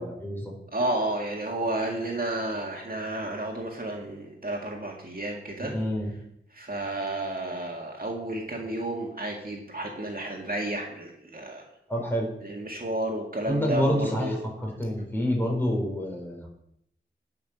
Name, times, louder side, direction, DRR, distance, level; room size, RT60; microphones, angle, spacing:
voice 1, 0.0-0.5 5.7-6.1 11.9-12.3 13.5-14.4 14.6-16.5, equal, 10° left, -1 dB, 4.6 m, -27 dB
voice 2, 0.7-5.7 6.5-11.7 12.4-14.4, right 1 dB, 45° right, 0 dB, 2.1 m, -31 dB
11.0 x 5.9 x 6.1 m, 0.75 s
cardioid pair, 45°, 20 cm